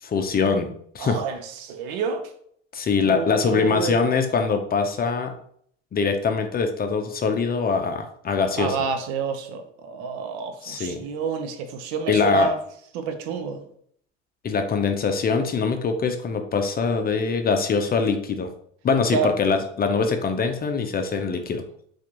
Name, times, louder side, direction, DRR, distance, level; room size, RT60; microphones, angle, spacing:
voice 1, 0.0-1.2 2.7-5.3 5.9-8.8 10.6-11.0 12.1-12.5 14.4-18.5 18.8-21.6, left 5 dB, 25° left, 6 dB, 0.6 m, -23 dB
voice 2, 1.0-2.3 3.0-4.0 8.6-12.6 12.9-13.7 19.1-19.3, right 5 dB, 60° right, 7 dB, 0.8 m, -29 dB
5.8 x 2.5 x 2.9 m, 0.64 s
figure-of-eight pair, 65°, 36 cm